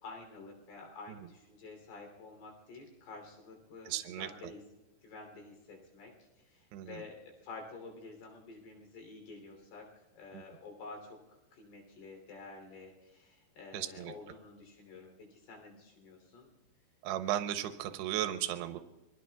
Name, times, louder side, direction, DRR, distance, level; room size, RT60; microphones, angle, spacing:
voice 1, 0.0-4.6 5.0-11.2 11.5-16.5, left 3 dB, 70° left, 3 dB, 5.1 m, -50 dB
voice 2, 3.9-4.3 6.7-6.9 13.7-14.1 17.0-18.8, right 12 dB, 85° right, 8 dB, 2.8 m, -35 dB
26.5 x 23.0 x 2.3 m, 1.1 s
omnidirectional pair, 4.8 m